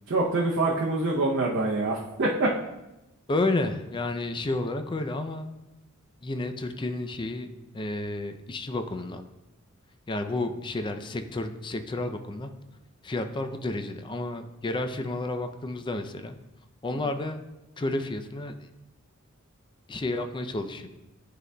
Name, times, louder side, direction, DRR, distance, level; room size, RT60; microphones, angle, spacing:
voice 1, 0.1-2.5, right 2 dB, 60° right, -3 dB, 0.7 m, -25 dB
voice 2, 3.3-5.5 6.2-7.5 7.7-9.3 10.1-12.5 13.0-16.4 16.8-17.4 17.8-18.7 19.9-20.9, left 2 dB, 20° left, 7 dB, 0.4 m, -31 dB
11.0 x 3.9 x 2.2 m, 0.97 s
head